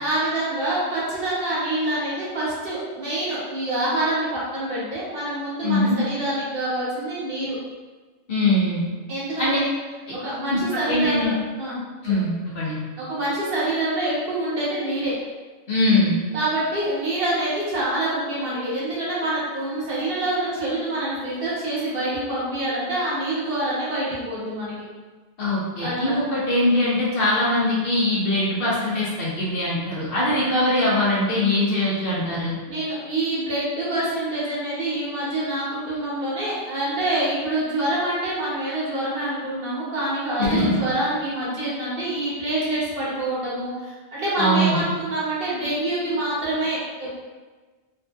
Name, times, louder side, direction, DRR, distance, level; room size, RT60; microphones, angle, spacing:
voice 1, 0.0-7.6 9.1-9.7 10.2-11.3 11.6-11.8 12.1-12.2 13.0-15.2 16.3-24.8 25.8-26.1 30.3-30.4 32.7-47.1, right 1 dB, 55° right, -8 dB, 1.0 m, -26 dB
voice 2, 5.6-6.0 8.3-8.8 9.4-9.6 10.5-11.3 12.0-12.8 15.7-16.2 25.4-32.6 40.4-40.8 44.4-44.8, left 1 dB, 60° left, -7 dB, 0.8 m, -22 dB
2.6 x 2.6 x 2.2 m, 1.3 s
omnidirectional pair, 1.2 m